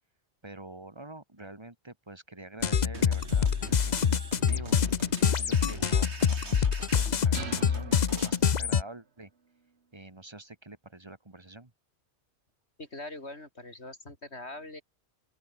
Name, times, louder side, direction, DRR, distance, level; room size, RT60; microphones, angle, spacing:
voice 1, 0.4-4.8 5.1-9.3 9.9-11.7, right 2 dB, 25° right, 2.2 m, -47 dB
sound 1, 2.6-8.8, left 7 dB, 45° left, 0.8 m, -26 dB
sound 2, 2.9-8.4, right 2 dB, 90° right, 4.4 m, -44 dB
sound 3, 7.3-9.0, right 5 dB, 75° right, 1.9 m, -42 dB
voice 2, 12.8-14.8, left 2 dB, 80° left, 5.2 m, -42 dB
open air
omnidirectional pair, 1.1 m